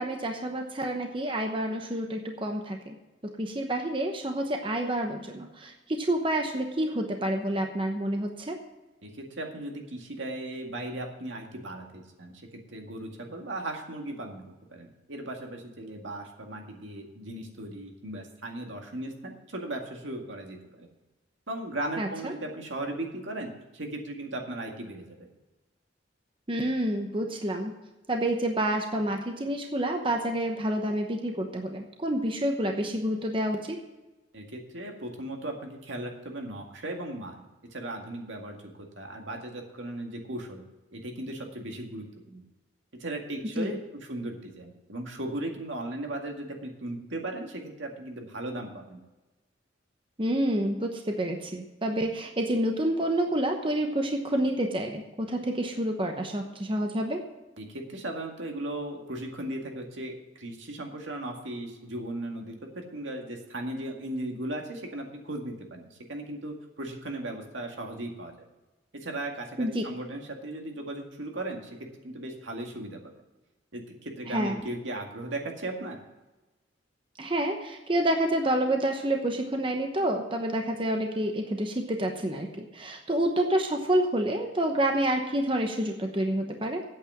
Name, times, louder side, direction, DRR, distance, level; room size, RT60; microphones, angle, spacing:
voice 1, 0.0-2.9 3.4-8.6 22.0-22.3 26.5-27.7 28.1-33.8 43.6-43.7 50.2-57.2 69.6-69.8 74.3-74.6 77.2-86.8, right 1 dB, 25° right, 4 dB, 0.9 m, -28 dB
voice 2, 9.0-14.4 14.7-20.9 21.5-25.3 34.3-37.4 37.7-40.6 40.9-42.4 43.0-43.8 44.1-49.0 57.6-68.3 68.9-71.8 72.0-73.0 73.7-76.0, right 1 dB, 80° right, 2 dB, 2.0 m, -37 dB
8.7 x 8.2 x 7.4 m, 1.1 s
head